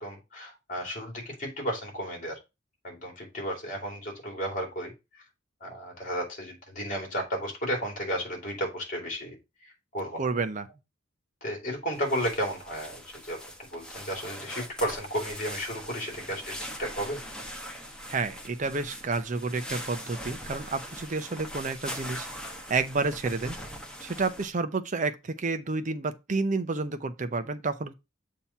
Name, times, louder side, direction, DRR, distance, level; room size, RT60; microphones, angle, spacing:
voice 1, 0.0-2.4 2.8-4.9 5.6-10.3 11.4-17.2, equal, 40° left, 2.7 m, -33 dB
voice 2, 10.2-10.7 18.1-22.3 22.7-23.6 24.0-27.9, right 3 dB, 40° right, 0.6 m, -30 dB
sound 1, 11.9-24.5, equal, 5° left, 1.1 m, -41 dB
7.2 x 2.9 x 5.5 m
head